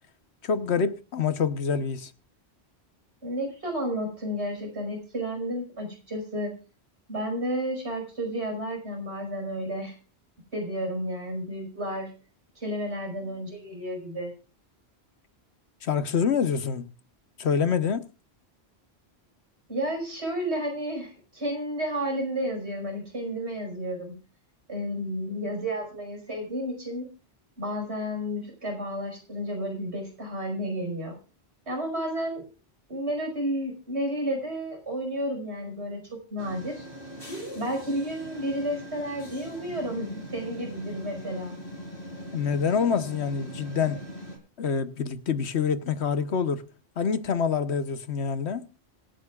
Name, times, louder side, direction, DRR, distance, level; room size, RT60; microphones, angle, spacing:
voice 1, 0.4-2.1 15.8-16.9 17.4-18.1 42.3-44.0 44.6-46.7 47.0-48.6, left 6 dB, 85° left, 1.3 m, -26 dB
voice 2, 3.2-6.5 7.1-10.0 10.5-12.1 12.6-14.3 19.7-24.1 24.7-27.1 27.6-31.1 31.7-32.4 32.9-36.9 37.5-41.6, equal, 90° right, 5.7 m, -31 dB
sound 1, 36.4-44.4, equal, 55° left, 4.1 m, -41 dB
25.5 x 9.3 x 2.4 m
omnidirectional pair, 1.1 m